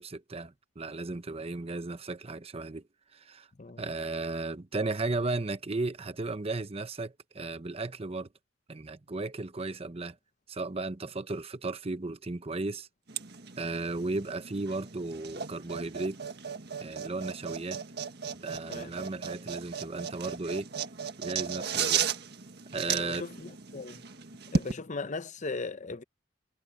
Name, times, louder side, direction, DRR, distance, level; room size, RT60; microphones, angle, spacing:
voice 1, 0.0-2.8 3.1-3.5 3.8-8.3 8.7-10.2 10.5-12.9 13.6-16.2 16.8-17.8 18.4-20.7 21.2-22.0 22.7-23.3, right 3 dB, 30° right, 0.8 m, -35 dB
sound 1, 13.1-24.7, right 6 dB, 55° right, 1.7 m, -35 dB
voice 2, 22.9-24.0 24.5-26.0, left 3 dB, 40° left, 0.8 m, -38 dB
head